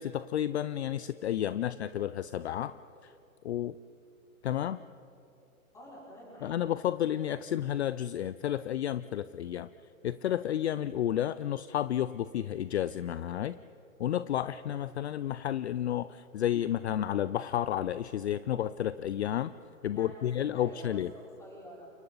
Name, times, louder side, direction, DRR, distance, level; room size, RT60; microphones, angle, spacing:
voice 1, 0.0-2.8 3.0-3.1 3.4-3.7 4.4-4.8 6.4-9.7 10.0-13.6 14.0-19.5 19.8-21.1, left 11 dB, 55° left, 15 dB, 0.5 m, -31 dB
voice 2, 5.7-6.6 19.9-20.3 20.5-21.9, equal, 10° left, -6 dB, 5.4 m, -48 dB
30.0 x 28.5 x 4.0 m, 2.7 s
hypercardioid pair, 165°, 42 cm